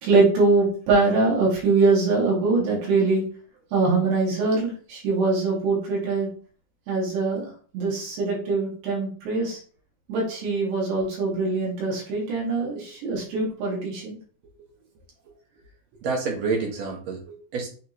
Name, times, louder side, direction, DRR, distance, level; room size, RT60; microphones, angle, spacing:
voice 1, 0.0-3.2 3.7-6.3 6.9-9.6 10.1-14.2, right 3 dB, 75° right, -4 dB, 4.3 m, -23 dB
voice 2, 16.0-17.7, right 4 dB, 50° right, 0 dB, 2.2 m, -28 dB
9.2 x 3.9 x 3.1 m, 0.43 s
omnidirectional pair, 5.0 m